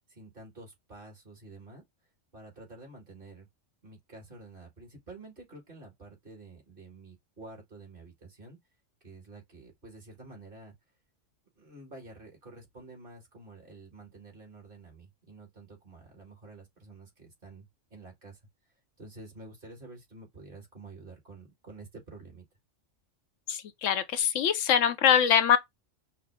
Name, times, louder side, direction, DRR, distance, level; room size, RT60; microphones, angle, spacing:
voice 1, 0.1-1.8 2.3-3.5 3.8-8.6 9.0-10.7 11.6-18.4 19.0-22.5, right 2 dB, 45° right, 2.1 m, -49 dB
voice 2, 23.5-25.6, left 9 dB, 85° left, 1.0 m, -23 dB
5.7 x 2.0 x 3.4 m
omnidirectional pair, 1.3 m